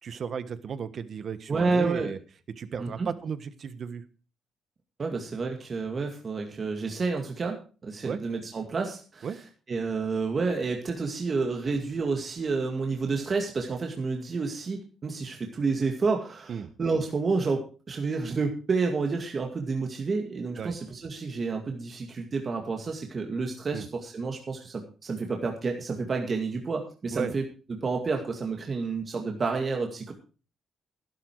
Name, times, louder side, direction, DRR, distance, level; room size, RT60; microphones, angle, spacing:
voice 1, 0.0-2.2 2.6-4.0 8.0-8.2 9.2-9.4 16.5-16.7 20.6-20.8 23.7-23.9 27.1-27.3, right 7 dB, 55° right, 13 dB, 1.3 m, -34 dB
voice 2, 1.5-2.1 2.8-3.1 5.0-9.3 9.7-27.5 27.8-30.1, right 4 dB, 40° right, 2 dB, 2.2 m, -30 dB
12.0 x 11.5 x 4.7 m, 0.36 s
cardioid pair, 90°, 0 cm